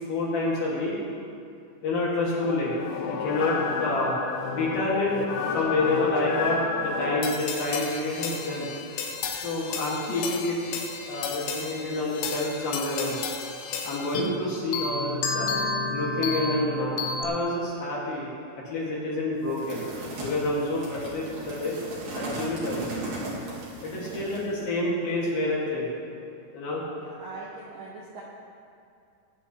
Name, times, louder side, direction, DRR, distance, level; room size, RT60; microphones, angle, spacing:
voice 1, 0.1-0.9 1.8-2.7 3.0-4.1 4.5-5.1 5.5-8.7 9.3-10.6 11.1-13.2 13.8-15.5 15.9-18.3 18.7-19.8 20.2-21.7 22.1-22.9 23.8-25.9 26.5-26.8, left 2 dB, 55° left, -6 dB, 3.3 m, -28 dB
sound 1, 2.4-14.4 14.7-17.2, left 5 dB, 85° left, 2.2 m, -32 dB
sound 2, 19.5-24.5, right 2 dB, 55° right, 3.2 m, -36 dB
voice 2, 27.0-28.2, right 3 dB, 70° right, -5 dB, 2.2 m, -42 dB
19.5 x 9.7 x 3.0 m, 2.5 s
omnidirectional pair, 5.7 m